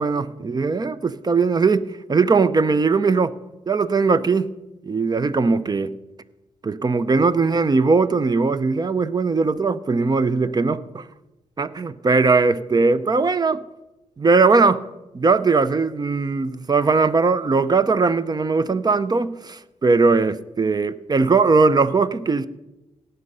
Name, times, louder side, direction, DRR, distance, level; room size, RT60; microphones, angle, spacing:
voice 1, 0.0-3.3 3.7-4.6 4.9-6.0 6.6-11.1 11.6-13.6 14.2-14.8 15.1-22.5, right 4 dB, 30° right, 0.6 m, -19 dB
17.5 x 6.7 x 5.5 m
cardioid pair, 65°, 13 cm